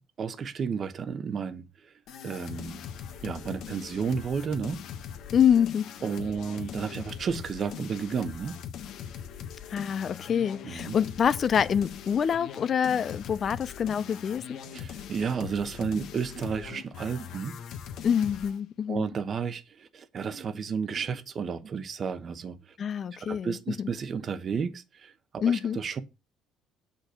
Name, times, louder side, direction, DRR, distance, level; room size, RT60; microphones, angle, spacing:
voice 1, 0.2-1.9 2.2-2.8 3.2-4.8 6.0-8.6 10.6-10.9 14.7-17.6 18.9-22.8 23.1-26.0, right 6 dB, 35° right, 1.0 m, -32 dB
sound 1, 2.1-18.6, left 8 dB, 60° left, 1.3 m, -41 dB
voice 2, 5.3-5.9 9.7-14.6 18.0-19.0 22.8-23.9 25.4-25.8, left 8 dB, 35° left, 0.5 m, -26 dB
8.6 x 5.3 x 6.4 m
cardioid pair, 150°, 0 cm